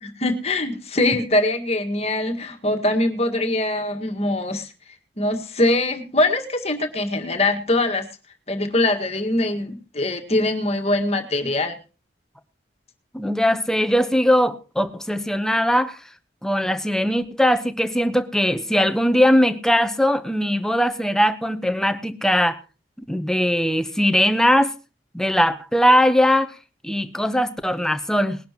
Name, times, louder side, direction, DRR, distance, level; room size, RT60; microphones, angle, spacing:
voice 1, 0.0-4.7 5.2-8.1 8.5-11.8, left 2 dB, 35° left, 1.8 m, -22 dB
voice 2, 13.1-16.0 16.4-22.6 23.1-24.7 25.1-26.6 26.8-28.4, equal, 5° left, 0.9 m, -20 dB
20.5 x 11.0 x 3.0 m
head